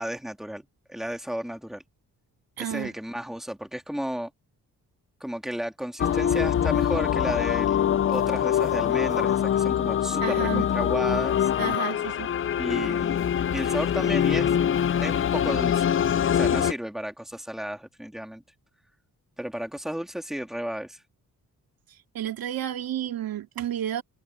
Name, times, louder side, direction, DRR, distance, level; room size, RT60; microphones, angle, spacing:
voice 1, 0.0-1.8 2.6-4.3 5.2-11.5 12.6-14.5 15.0-15.9 16.3-18.4 19.4-21.0, equal, ahead, 2.4 m, -33 dB
voice 2, 2.6-2.9 10.2-10.7 11.6-12.3 22.1-24.0, right 11 dB, 85° right, 2.5 m, -31 dB
sound 1, 6.0-16.7, left 9 dB, 40° left, 0.5 m, -24 dB
wide cardioid pair, 170°, 34 cm